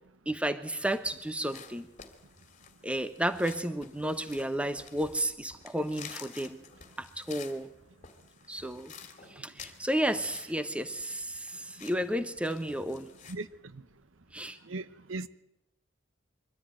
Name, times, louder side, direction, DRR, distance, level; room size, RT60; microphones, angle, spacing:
voice 1, 0.3-1.9 2.8-6.6 7.0-7.7 8.5-8.9 9.4-13.1 14.3-14.6, right 1 dB, 5° right, 11 dB, 1.1 m, -32 dB
sound 1, 0.9-13.4, left 7 dB, 40° left, 2.5 m, -51 dB
voice 2, 14.7-15.3, right 2 dB, 75° right, 14 dB, 0.9 m, -37 dB
23.5 x 14.5 x 9.1 m, 0.88 s
head